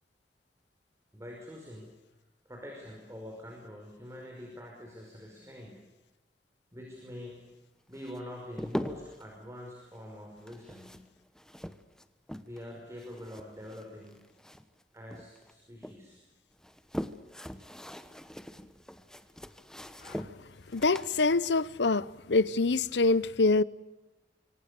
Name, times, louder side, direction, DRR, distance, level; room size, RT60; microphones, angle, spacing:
voice 1, 1.1-1.9 2.5-5.8 6.7-7.5 7.9-10.9 12.5-14.2 14.9-16.2, left 1 dB, 15° right, 5.4 m, -45 dB
sound 1, 7.9-9.2 10.4-12.7 13.0-14.8 15.1-16.0 16.5-22.6, equal, 5° left, 1.2 m, -42 dB
voice 2, 20.7-23.6, left 3 dB, 80° left, 0.8 m, -25 dB
26.0 x 25.0 x 6.9 m
head